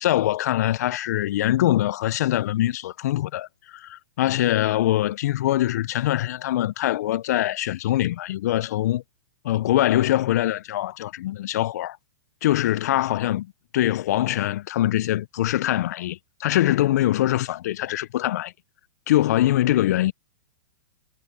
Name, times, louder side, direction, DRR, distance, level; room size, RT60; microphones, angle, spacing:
voice 1, 0.0-9.0 9.4-12.0 12.4-13.5 13.7-18.5 19.1-20.1, left 14 dB, 60° left, 0.9 m, -23 dB
hypercardioid pair, 115°, 10 cm